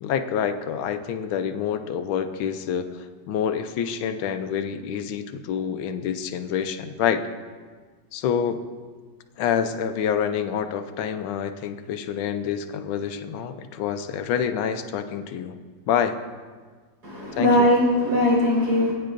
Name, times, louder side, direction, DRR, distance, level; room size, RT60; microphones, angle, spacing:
voice 1, 0.0-7.2 8.1-8.6 9.4-15.6 15.9-16.2 17.4-17.7, left 8 dB, 90° left, 8 dB, 1.5 m, -27 dB
voice 2, 17.0-18.9, left 1 dB, 65° right, -4 dB, 4.5 m, -20 dB
20.0 x 9.4 x 2.5 m, 1.5 s
omnidirectional pair, 2.1 m